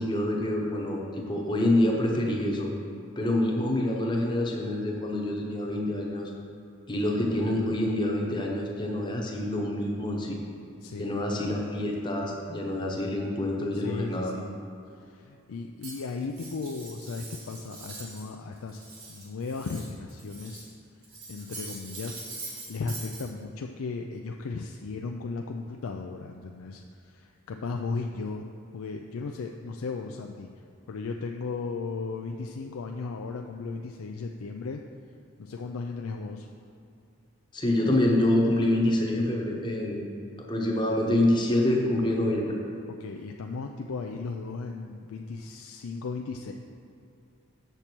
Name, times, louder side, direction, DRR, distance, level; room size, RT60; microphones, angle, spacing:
voice 1, 0.0-2.7 3.2-6.3 6.9-10.4 11.0-14.3 37.5-40.1 40.4-42.6, left 1 dB, 20° left, -1 dB, 0.9 m, -26 dB
voice 2, 10.8-11.2 13.7-14.6 14.9-18.8 19.1-20.7 21.3-28.4 28.7-30.5 30.9-34.8 35.4-36.5 43.0-46.5, left 4 dB, 85° left, 2 dB, 0.4 m, -36 dB
Cutlery silverware, 15.8-18.3 18.6-20.7 21.0-23.3, right 3 dB, 80° right, 1.8 m, -43 dB
7.2 x 6.7 x 4.5 m, 2.6 s
head